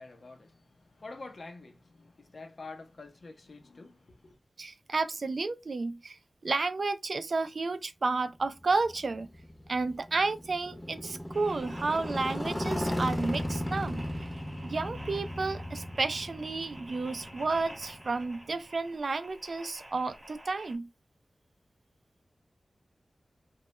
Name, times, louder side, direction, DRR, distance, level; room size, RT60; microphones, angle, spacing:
voice 1, 0.0-4.4, left 3 dB, 70° left, 0.6 m, -47 dB
voice 2, 4.6-9.3 9.7-14.1 14.6-20.9, right 3 dB, 70° right, 0.3 m, -31 dB
Motorcycle, 8.6-18.5, left 1 dB, 20° left, 0.7 m, -36 dB
sound 1, 11.3-20.8, right 1 dB, 25° right, 0.8 m, -50 dB
2.2 x 2.0 x 3.0 m
cardioid pair, 45°, 0 cm